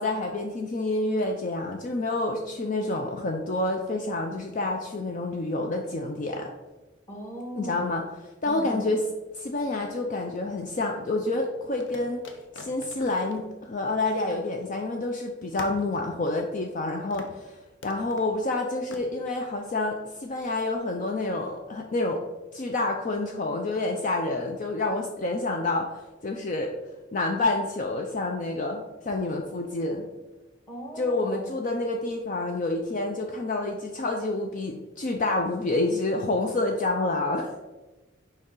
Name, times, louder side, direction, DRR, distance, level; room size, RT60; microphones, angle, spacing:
voice 1, 0.0-6.5 7.6-8.0 8.4-9.0 9.3-12.2 12.5-22.2 22.5-25.9 26.2-26.7 27.1-30.1 31.0-37.5, left 2 dB, 40° left, 2 dB, 0.5 m, -28 dB
voice 2, 7.1-7.8 8.4-8.9 30.7-31.5, right 1 dB, 15° left, 0 dB, 1.4 m, -38 dB
sound 1, 9.7-10.6 11.8-14.8 15.0-15.1 15.6-16.8 17.1-17.4 17.8-18.4 18.9-19.1, left 3 dB, 70° left, 0.7 m, -45 dB
6.6 x 4.7 x 3.8 m, 1.2 s
head